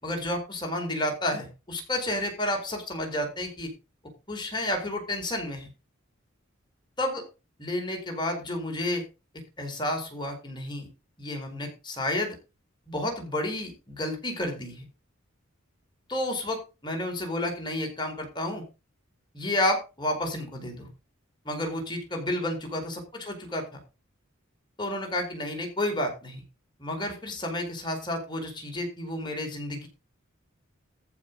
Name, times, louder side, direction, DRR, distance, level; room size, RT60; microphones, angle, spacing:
voice 1, 0.0-3.7 4.3-5.7 7.0-7.2 7.6-9.0 9.6-10.9 11.2-12.4 12.9-14.9 16.1-18.6 19.3-20.9 21.4-23.6 24.8-26.4 26.8-29.9, left 1 dB, 20° left, 3 dB, 4.6 m, -31 dB
14.5 x 6.1 x 5.3 m, 0.30 s
head